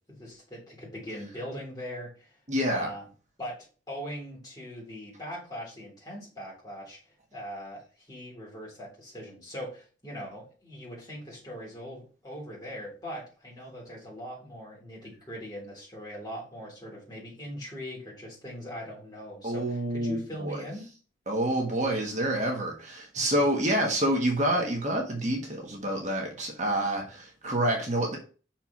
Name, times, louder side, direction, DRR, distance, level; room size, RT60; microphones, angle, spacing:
voice 1, 0.1-2.4 2.6-3.0 3.4-7.0 7.3-20.9, equal, 20° left, 3.6 m, -41 dB
voice 2, 2.5-2.9 19.4-20.6 21.3-28.2, right 1 dB, 40° right, 1.4 m, -28 dB
5.9 x 4.5 x 5.9 m
head